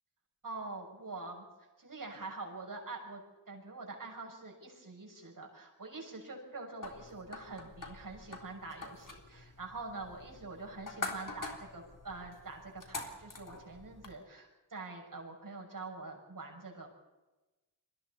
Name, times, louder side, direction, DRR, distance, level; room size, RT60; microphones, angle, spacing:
voice 1, 0.4-1.4 1.8-3.2 3.5-16.9, right 3 dB, 40° right, 0 dB, 6.9 m, -45 dB
sound 1, 6.8-14.1, left 3 dB, 40° left, 3.7 m, -45 dB
29.5 x 22.0 x 4.3 m, 1.1 s
cardioid pair, 60°, 49 cm